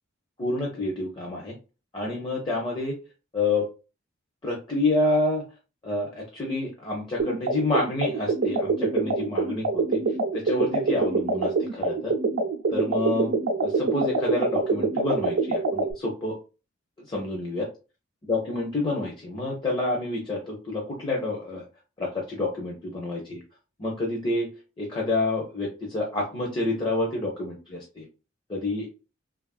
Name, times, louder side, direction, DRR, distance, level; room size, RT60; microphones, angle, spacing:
voice 1, 0.4-1.6 1.9-3.0 3.3-3.7 4.4-5.4 5.8-10.0 10.3-12.1 12.7-13.3 13.6-16.4 17.1-17.7 18.3-21.6 22.0-23.4 23.8-24.5 24.8-28.1 28.5-28.9, left 2 dB, 25° left, -2 dB, 0.5 m, -28 dB
sound 1, 7.2-15.9, right 3 dB, 65° right, 0.5 m, -25 dB
3.1 x 2.3 x 2.3 m, 0.32 s
head